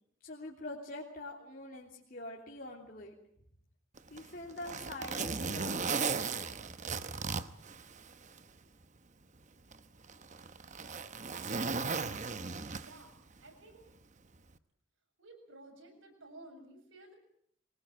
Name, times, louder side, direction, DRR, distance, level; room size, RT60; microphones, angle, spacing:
voice 1, 0.2-3.1 4.1-6.5, left 2 dB, 45° left, -2 dB, 3.2 m, -45 dB
Zipper (clothing), 4.0-8.4 8.8-8.9 9.7-13.2 14.3-14.5, right 4 dB, 35° right, 1.0 m, -36 dB
voice 2, 12.7-13.8 15.2-17.1, right 2 dB, 70° right, 3 dB, 7.7 m, -54 dB
24.0 x 19.5 x 9.1 m, 0.68 s
head